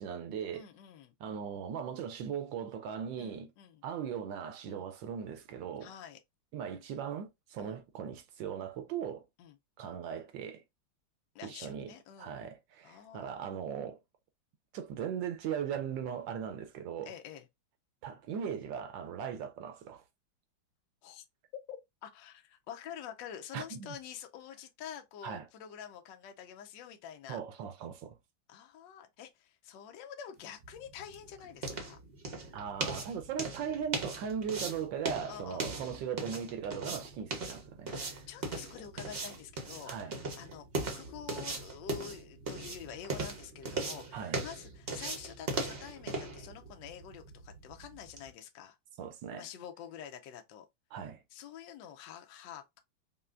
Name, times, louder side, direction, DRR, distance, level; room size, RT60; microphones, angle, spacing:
voice 1, 0.0-0.7 1.2-3.5 3.8-5.9 6.5-9.2 9.8-10.6 11.4-14.0 14.7-17.1 18.0-20.0 23.5-24.0 25.2-25.5 27.3-28.2 32.5-38.2 39.8-40.2 44.1-44.4 49.0-49.5 50.9-51.2, right 8 dB, 75° right, 1.3 m, -39 dB
voice 2, 0.5-1.1 3.2-3.8 4.7-4.9 5.8-6.2 7.6-7.8 9.4-9.6 11.3-12.4 12.8-13.5 17.0-17.5 21.0-21.2 21.7-27.4 28.5-32.0 35.3-35.8 38.0-48.8 49.4-50.7 51.3-52.8, left 9 dB, 75° left, 1.2 m, -48 dB
sound 1, 30.5-48.3, right 3 dB, 45° right, 0.8 m, -39 dB
5.5 x 2.3 x 2.4 m
omnidirectional pair, 2.2 m